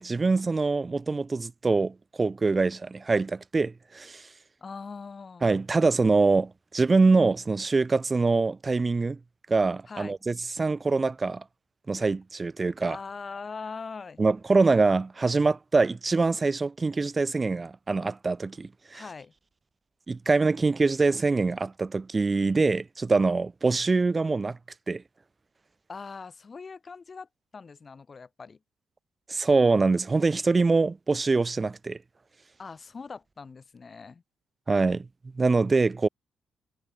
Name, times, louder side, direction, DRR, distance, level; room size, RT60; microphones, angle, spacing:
voice 1, 0.0-4.2 5.4-9.2 9.5-11.4 11.9-13.0 14.2-19.0 20.1-24.6 24.9-25.0 29.3-32.0 34.7-35.1 35.4-36.1, right 3 dB, 25° right, 0.3 m, -24 dB
voice 2, 4.6-5.5 9.9-10.1 12.9-14.2 18.9-19.3 25.9-28.6 32.6-34.2, left 5 dB, 35° left, 3.0 m, -41 dB
cardioid pair, 90°, 0 cm